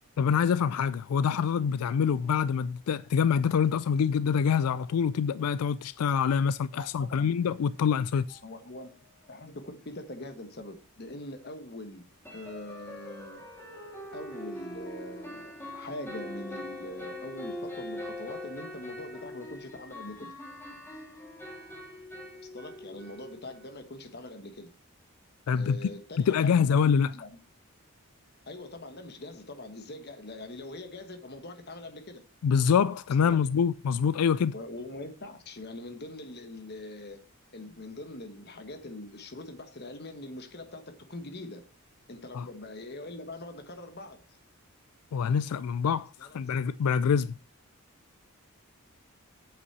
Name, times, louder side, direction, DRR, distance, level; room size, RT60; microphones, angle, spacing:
voice 1, 0.2-8.4 25.5-25.8 26.3-27.1 32.4-34.5 42.3-42.5 45.1-47.3, left 7 dB, 90° left, 0.3 m, -25 dB
voice 2, 6.8-7.5 8.4-8.9 9.3-13.4 14.1-20.3 22.5-24.7 25.5-26.8 27.1-27.3 28.4-32.2 33.2-33.4 34.5-37.2 37.5-41.7 42.1-44.2 46.2-46.4, left 1 dB, 45° left, 1.3 m, -43 dB
sound 1, 8.3-8.4 8.8-8.9 9.2-9.3 12.3-23.7, left 1 dB, 10° left, 2.3 m, -42 dB
8.0 x 5.6 x 6.1 m
head